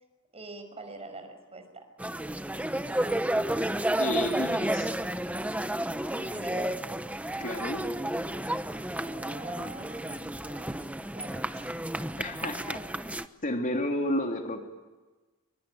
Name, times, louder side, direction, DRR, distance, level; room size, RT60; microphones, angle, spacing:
voice 1, 0.3-1.9 6.1-6.7 9.0-10.9 11.1-11.7, right 2 dB, 30° right, 7 dB, 5.6 m, -44 dB
sound 1, 2.0-13.2, right 1 dB, 5° right, 0.9 m, -31 dB
voice 2, 4.0-4.9 7.4-7.8 12.2-12.8 13.4-14.7, left 1 dB, 35° left, 2 dB, 3.4 m, -31 dB
27.0 x 24.0 x 8.9 m, 1.2 s
head